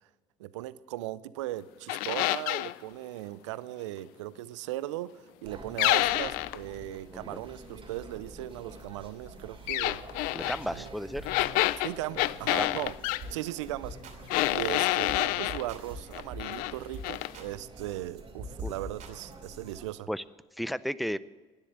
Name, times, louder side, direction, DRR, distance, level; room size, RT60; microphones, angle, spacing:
voice 1, 0.4-10.0 10.7-10.9 11.8-12.9 13.3-14.0 14.5-20.1, right 15 dB, 85° right, 18 dB, 0.5 m, -38 dB
sound 1, 1.9-2.7 5.8-6.6 9.7-10.6 11.3-13.2 14.3-15.6 16.1-16.7 17.0-17.3, left 18 dB, 70° left, 0.4 m, -28 dB
sound 2, 5.4-19.9, right 2 dB, 35° right, 2.8 m, -48 dB
voice 2, 10.3-11.3 12.6-12.8 18.6-18.7 20.1-20.2 20.6-21.2, equal, ahead, 18 dB, 0.5 m, -33 dB
sound 3, 13.2-13.4 13.6-14.2 14.4-14.7 15.1-15.2 15.5-16.5 16.9-17.5 17.8-19.8, right 1 dB, 60° right, 2.8 m, -43 dB
12.0 x 10.0 x 7.8 m, 1.3 s
hypercardioid pair, 65°, 15 cm